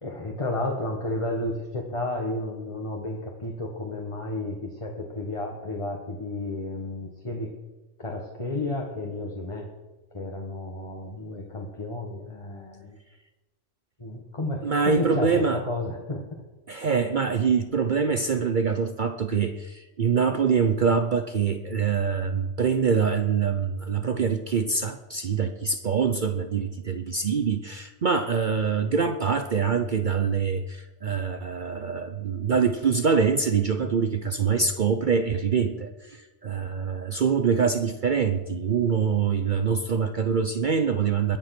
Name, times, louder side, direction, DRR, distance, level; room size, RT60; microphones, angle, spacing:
voice 1, 0.0-7.5 8.0-9.7 10.1-12.9 14.0-16.2 35.7-35.8, left 2 dB, 25° left, 0 dB, 1.7 m, -32 dB
voice 2, 14.6-15.6 16.7-41.4, right 6 dB, 50° right, 8 dB, 0.8 m, -24 dB
21.5 x 7.9 x 6.0 m, 1.1 s
omnidirectional pair, 1.2 m